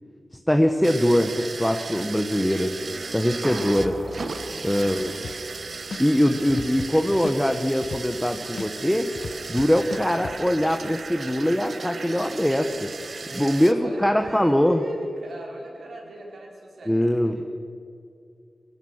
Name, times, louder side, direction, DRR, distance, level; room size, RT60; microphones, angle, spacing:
voice 1, 0.5-2.7 3.1-4.0 4.6-5.1 6.0-9.1 9.5-12.9 13.3-14.8 16.9-17.4, equal, 5° left, 5 dB, 1.1 m, -22 dB
sound 1, 0.8-13.7, right 4 dB, 60° right, 1.1 m, -36 dB
sound 2, 3.4-5.9, right 1 dB, 40° right, 2.8 m, -38 dB
voice 2, 4.3-4.7 13.2-17.5, right 1 dB, 80° right, -1 dB, 4.8 m, -39 dB
sound 3, 5.2-5.6 5.9-8.3 8.6-10.4, left 4 dB, 65° left, 0.9 m, -35 dB
25.0 x 16.5 x 6.5 m, 2.4 s
wide cardioid pair, 125°, 0 cm